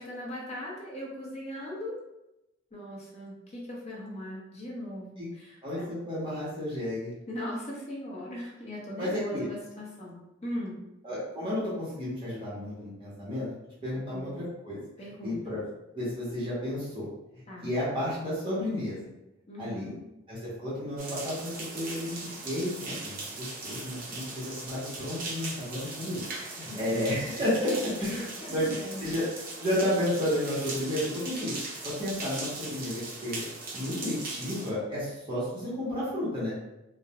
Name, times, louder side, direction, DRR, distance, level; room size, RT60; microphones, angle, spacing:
voice 1, 0.0-1.9 2.7-5.9 7.3-10.8 14.1-14.3 15.0-15.4 17.5-17.7 19.5-20.0 26.7-27.1 28.4-29.1, left 1 dB, 35° left, -4 dB, 0.6 m, -39 dB
voice 2, 5.6-7.1 9.0-9.5 11.0-13.5 13.8-14.8 15.2-15.7 15.9-17.1 17.6-19.0 19.6-19.9 20.3-26.2 26.5-29.3 29.6-31.5 31.8-33.4 33.7-36.5, left 1 dB, 25° right, -9 dB, 0.8 m, -32 dB
sound 1, 21.0-34.7, right 3 dB, 50° right, 0.5 m, -39 dB
2.3 x 2.0 x 2.8 m, 0.92 s
head